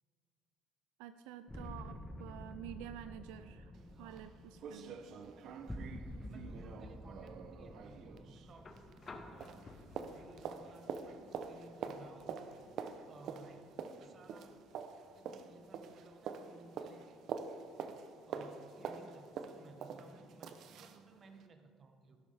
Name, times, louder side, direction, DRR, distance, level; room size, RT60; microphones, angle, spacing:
voice 1, 1.0-3.7 4.0-5.0, right 11 dB, 90° right, 10 dB, 0.4 m, -49 dB
sound 1, 1.5-10.4, left 1 dB, 5° left, 0.9 m, -50 dB
sound 2, 3.7-3.8 4.2-4.3 4.6-9.2 9.4-21.0 21.4-21.5, right 6 dB, 60° right, 0.7 m, -46 dB
voice 2, 3.9-4.4 5.6-5.7 6.3-9.7 10.0-12.6 13.1-14.6 15.1-17.2 18.2-22.2, right 3 dB, 40° right, 6 dB, 1.2 m, -58 dB
sound 3, 8.6-16.6 18.0-18.1, left 3 dB, 30° left, 1.1 m, -58 dB
12.0 x 11.0 x 3.5 m, 2.2 s
cardioid pair, 100°, 0 cm